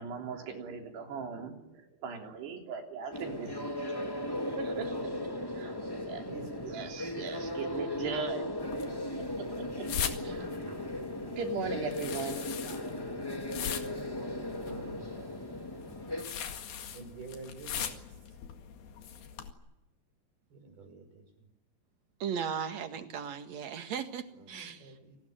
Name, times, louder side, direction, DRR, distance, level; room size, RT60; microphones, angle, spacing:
voice 1, 0.0-3.8 4.5-5.2 5.5-5.8 6.0-6.3 6.6-8.6 9.2-9.9 10.2-10.5 11.4-12.6, right 5 dB, 85° right, 5.4 m, -39 dB
sound 1, 3.1-16.2, left 1 dB, 10° left, 1.4 m, -37 dB
voice 2, 5.4-7.1 10.5-11.0 11.4-11.8 14.7-15.1 16.9-18.2 20.5-21.5 24.3-25.2, right 3 dB, 70° right, 8.4 m, -50 dB
sound 2, 8.6-19.5, left 8 dB, 70° left, 3.7 m, -41 dB
voice 3, 22.2-24.9, right 7 dB, 50° right, 2.6 m, -37 dB
29.0 x 19.5 x 9.3 m
omnidirectional pair, 4.7 m